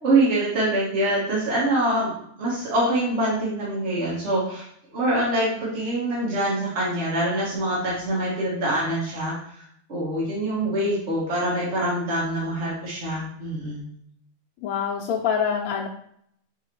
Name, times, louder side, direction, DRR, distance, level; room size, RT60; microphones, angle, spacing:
voice 1, 0.0-2.1 2.4-4.6 4.9-13.8, right 1 dB, 55° right, -7 dB, 1.5 m, -25 dB
voice 2, 14.6-15.9, left 7 dB, 85° left, -3 dB, 1.1 m, -25 dB
5.0 x 2.8 x 3.0 m, 0.68 s
omnidirectional pair, 1.5 m